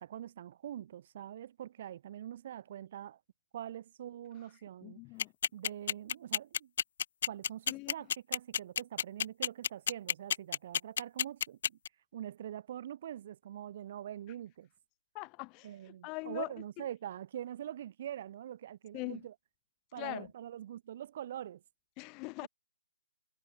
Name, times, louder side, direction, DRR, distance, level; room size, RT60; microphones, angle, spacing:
voice 1, 0.0-3.2 3.5-5.0 5.5-6.7 7.3-11.8 12.1-14.7 15.6-19.3 19.9-21.6 22.4-22.5, right 11 dB, 20° right, 3.2 m, -44 dB
voice 2, 4.8-5.3 7.7-7.9 15.1-15.7 16.0-16.5 18.9-19.2 19.9-20.3 22.0-22.5, left 30 dB, 10° left, 1.5 m, -41 dB
sound 1, 5.2-11.9, left 8 dB, 30° left, 0.5 m, -30 dB
hypercardioid pair, 175°, 0 cm